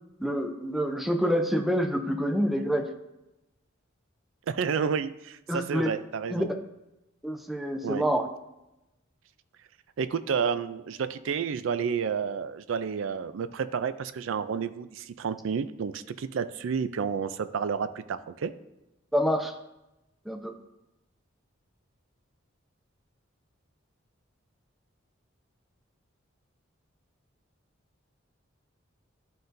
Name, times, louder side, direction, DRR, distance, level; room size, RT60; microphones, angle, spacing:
voice 1, 0.2-2.9 5.5-5.9 6.3-6.4 7.2-8.3 19.1-19.5 20.3-20.5, equal, ahead, 5 dB, 0.5 m, -27 dB
voice 2, 4.5-6.5 7.8-8.0 10.0-18.5, right 6 dB, 75° right, 13 dB, 0.4 m, -30 dB
11.5 x 3.8 x 2.6 m, 0.93 s
head